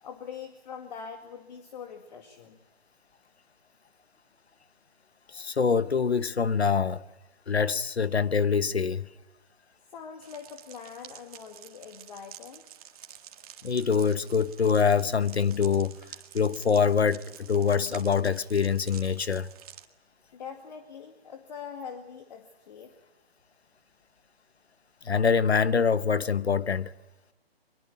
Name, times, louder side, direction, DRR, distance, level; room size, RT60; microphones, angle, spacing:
voice 1, 0.0-2.6 5.3-5.5 9.9-12.7 20.3-22.9, left 6 dB, 45° left, 2.2 m, -43 dB
voice 2, 5.3-7.0 7.5-9.1 13.6-16.0 16.3-19.5 25.0-26.9, left 6 dB, 85° left, 1.1 m, -25 dB
sound 1, 10.2-19.8, right 10 dB, 35° right, 1.9 m, -49 dB
23.5 x 23.0 x 8.7 m
figure-of-eight pair, 145°, 31 cm